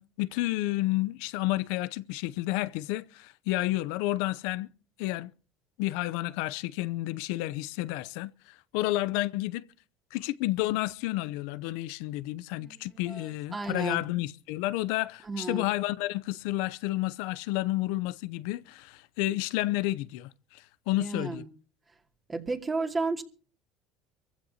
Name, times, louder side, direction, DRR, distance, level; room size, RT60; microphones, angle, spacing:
voice 1, 0.0-4.7 5.0-5.3 5.8-8.3 8.7-9.6 10.1-21.4, left 17 dB, 75° left, 0.6 m, -30 dB
voice 2, 12.5-14.0 15.2-15.7 21.0-21.5 22.3-23.2, right 3 dB, 25° right, 2.6 m, -33 dB
23.5 x 15.5 x 2.9 m
supercardioid pair, 80°, 0 cm